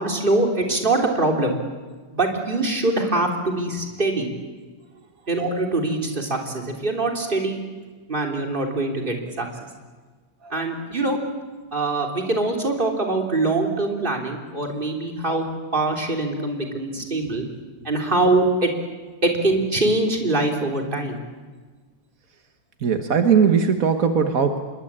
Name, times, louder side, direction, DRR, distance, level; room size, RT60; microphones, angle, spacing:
voice 1, 0.0-1.6 2.1-4.3 5.3-7.6 8.1-9.5 10.5-11.2 11.7-15.4 15.7-17.4 17.8-18.7 19.2-21.2, right 2 dB, 15° right, 2 dB, 3.3 m, -23 dB
voice 2, 22.8-24.6, right 6 dB, 55° right, 6 dB, 1.0 m, -19 dB
27.0 x 22.0 x 8.6 m, 1.4 s
omnidirectional pair, 3.3 m